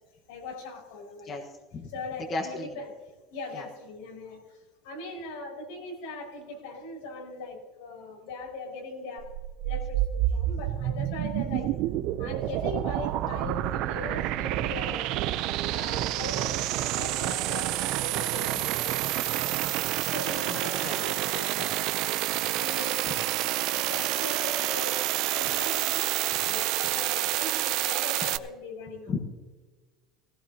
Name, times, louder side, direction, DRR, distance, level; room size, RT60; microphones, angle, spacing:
voice 1, 0.3-1.5 1.9-3.1 3.3-9.3 9.6-11.7 12.2-15.1 15.7-16.5 16.9-19.7 20.1-22.0 22.5-26.1 26.5-29.1, left 3 dB, 85° left, 1 dB, 5.6 m, -40 dB
voice 2, 1.2-1.9 2.3-2.7 3.5-3.6 20.5-21.0 29.1-29.2, left 3 dB, 25° left, 2 dB, 1.4 m, -34 dB
sound 1, 9.2-28.4, right 14 dB, 50° right, 0.6 m, -28 dB
19.0 x 16.0 x 2.9 m, 1.3 s
cardioid pair, 170°, 0 cm